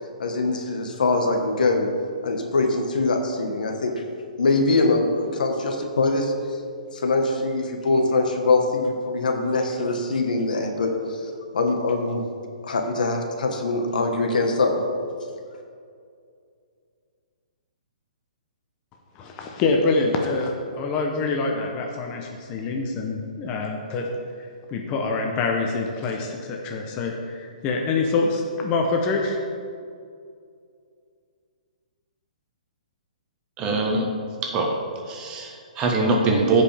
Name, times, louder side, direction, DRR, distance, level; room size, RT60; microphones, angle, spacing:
voice 1, 0.2-1.9 2.2-3.9 4.4-6.3 6.9-11.2 11.5-12.2 12.6-14.8, left 3 dB, 80° left, 4 dB, 1.4 m, -23 dB
voice 2, 19.1-24.1 24.7-29.4, left 3 dB, 25° left, 1 dB, 0.8 m, -25 dB
voice 3, 33.6-34.1 34.4-34.8 35.1-36.6, right 3 dB, 20° right, 0 dB, 1.2 m, -22 dB
15.0 x 5.3 x 3.4 m, 2.3 s
hypercardioid pair, 155°, 4 cm